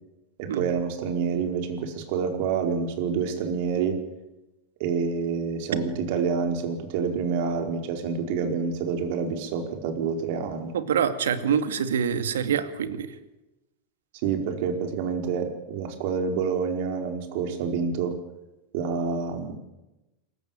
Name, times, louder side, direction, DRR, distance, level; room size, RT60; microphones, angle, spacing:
voice 1, 0.4-4.0 4.8-10.7 14.2-18.1 18.7-19.6, right 6 dB, 60° right, 5 dB, 4.7 m, -27 dB
voice 2, 10.7-13.1, right 7 dB, 75° right, 10 dB, 2.2 m, -25 dB
26.5 x 16.0 x 9.0 m, 0.99 s
hypercardioid pair, 95°, 0 cm